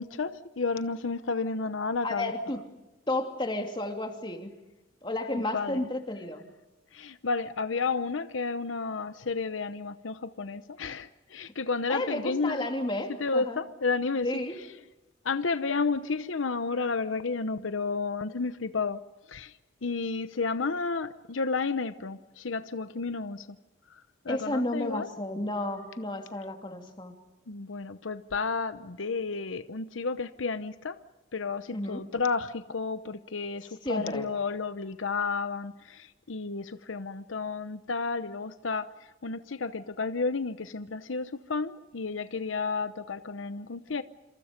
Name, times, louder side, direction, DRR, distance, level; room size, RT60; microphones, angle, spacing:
voice 1, 0.0-2.3 5.3-5.9 6.9-12.7 13.2-14.3 15.2-19.0 19.3-19.5 19.8-23.6 24.2-25.1 27.5-31.0 31.3-38.9 39.2-44.0, left 4 dB, 90° left, 0.9 m, -31 dB
voice 2, 2.0-2.6 3.1-4.5 5.0-6.4 11.9-13.6 14.2-14.6 24.3-27.2 31.7-32.0 33.8-34.3, left 1 dB, 25° left, 2.8 m, -32 dB
27.5 x 27.5 x 5.2 m
head